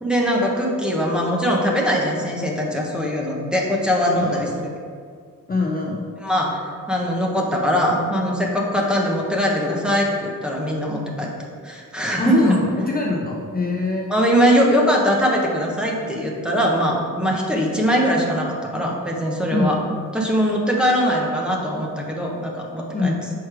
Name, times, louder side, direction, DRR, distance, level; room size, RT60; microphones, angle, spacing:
voice 1, 0.0-4.5 6.2-6.6 6.9-11.3 11.6-12.6 14.1-19.8 20.1-23.1, equal, 5° right, -2 dB, 0.8 m, -21 dB
voice 2, 4.3-4.6 5.5-6.0 12.2-14.1 19.5-19.7 22.9-23.1, left 3 dB, 25° left, -3 dB, 0.6 m, -23 dB
6.3 x 4.6 x 4.8 m, 2.1 s
wide cardioid pair, 160°, 33 cm